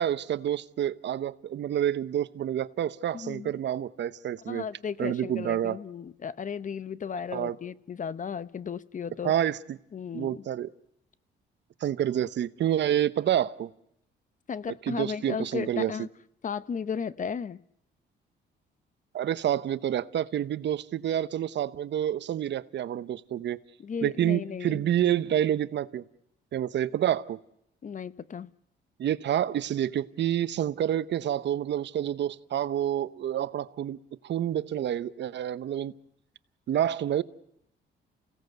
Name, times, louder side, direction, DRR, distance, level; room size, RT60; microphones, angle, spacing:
voice 1, 0.0-4.6 5.0-5.8 7.3-7.6 9.2-9.8 10.1-10.7 11.8-13.7 14.9-15.9 19.1-23.6 24.0-26.0 26.5-27.4 29.0-34.0 34.2-35.9 36.7-37.2, right 10 dB, 65° right, 0.9 m, -28 dB
voice 2, 3.1-3.6 4.5-9.3 9.9-10.4 14.5-16.1 16.4-17.6 23.8-24.8 27.8-28.5, left 6 dB, 40° left, 0.8 m, -35 dB
29.0 x 17.0 x 8.1 m
cardioid pair, 90°, 20 cm